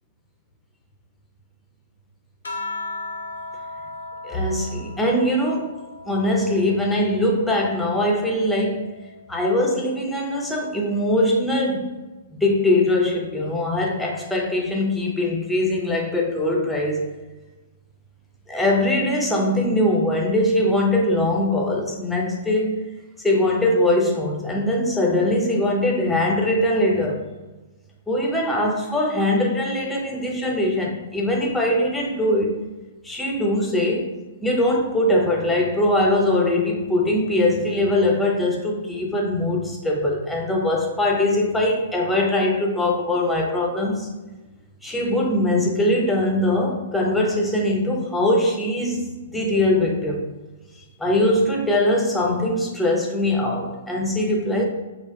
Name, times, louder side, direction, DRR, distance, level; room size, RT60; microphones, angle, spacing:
sound 1, 2.4-7.2 7.7-9.4 10.6-11.1, left 2 dB, 65° left, 0.4 m, -37 dB
voice 1, 4.2-5.7 6.1-8.9 9.3-11.9 12.4-17.1 18.5-22.8 23.2-27.3 28.1-32.6 33.0-34.1 34.4-44.1 44.8-50.2 51.0-54.6, left 1 dB, 5° left, -1 dB, 0.5 m, -21 dB
3.2 x 2.4 x 2.3 m, 1.2 s
figure-of-eight pair, 115°, 0 cm